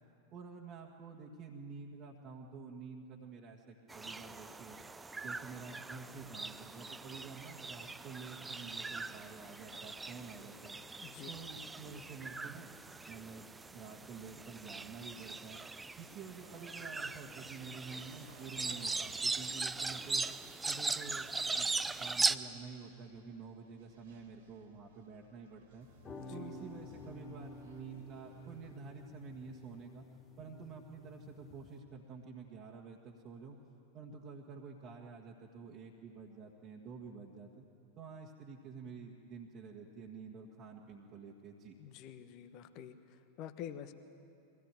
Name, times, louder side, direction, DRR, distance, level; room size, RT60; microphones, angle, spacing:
voice 1, 0.3-4.8 5.2-10.8 11.2-12.7 13.0-15.6 16.0-20.3 20.6-21.7 22.0-25.9 26.3-30.0 30.4-33.6 33.9-37.7 37.9-41.8, right 5 dB, 35° right, -2 dB, 1.7 m, -49 dB
sound 1, 3.9-22.4, right 3 dB, 10° right, 0.5 m, -40 dB
sound 2, 16.4-28.8, right 4 dB, 60° right, 2.6 m, -62 dB
sound 3, 25.8-31.8, left 2 dB, 25° left, 1.8 m, -52 dB
voice 2, 41.8-43.0 43.4-43.9, left 10 dB, 40° left, 10 dB, 1.2 m, -47 dB
23.0 x 17.0 x 9.2 m, 2.7 s
figure-of-eight pair, 90°, 0 cm